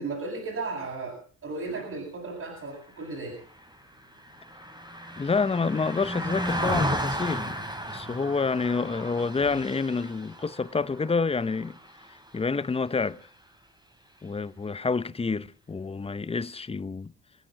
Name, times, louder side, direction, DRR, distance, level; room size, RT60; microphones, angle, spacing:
voice 1, 0.0-3.4 9.4-9.6, right 3 dB, 50° right, 7.5 m, -35 dB
Car passing by, 3.1-12.6 13.0-13.2, equal, 15° right, 5.2 m, -34 dB
voice 2, 5.2-7.6 7.9-11.8 12.1-13.2 14.2-17.1, left 4 dB, 20° left, 0.8 m, -28 dB
25.5 x 8.8 x 5.9 m
cardioid pair, 90°, 30 cm